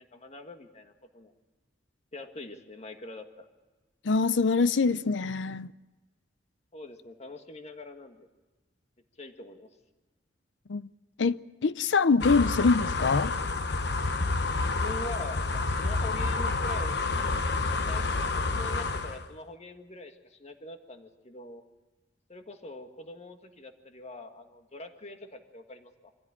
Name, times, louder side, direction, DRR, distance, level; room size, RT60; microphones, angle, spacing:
voice 1, 0.0-1.3 2.1-3.5 6.7-8.3 9.2-9.7 14.6-17.0 17.7-18.1 18.3-21.6 22.3-26.1, left 2 dB, 35° left, 1.8 m, -43 dB
voice 2, 4.0-5.7 10.7-10.9 11.2-13.3, left 4 dB, 80° left, 0.6 m, -24 dB
sound 1, 12.2-19.3, left 3 dB, 65° left, 1.1 m, -29 dB
25.0 x 15.0 x 8.8 m
head